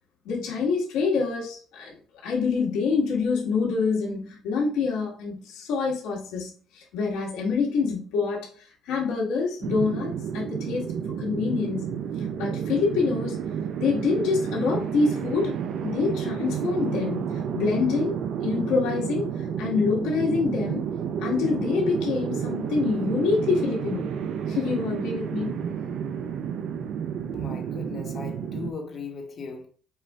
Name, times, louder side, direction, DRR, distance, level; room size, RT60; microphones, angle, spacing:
voice 1, 0.2-1.9 2.2-10.9 11.2-11.8 12.4-13.4 13.8-15.6 15.8-18.2 18.4-20.8 21.2-24.1 24.5-25.6, left 4 dB, 80° left, 1.7 m, -26 dB
sound 1, 9.6-28.7, right 7 dB, 65° right, 0.5 m, -31 dB
voice 2, 27.3-29.7, left 4 dB, 45° left, 1.3 m, -38 dB
5.4 x 2.5 x 3.5 m
cardioid pair, 100°, 0 cm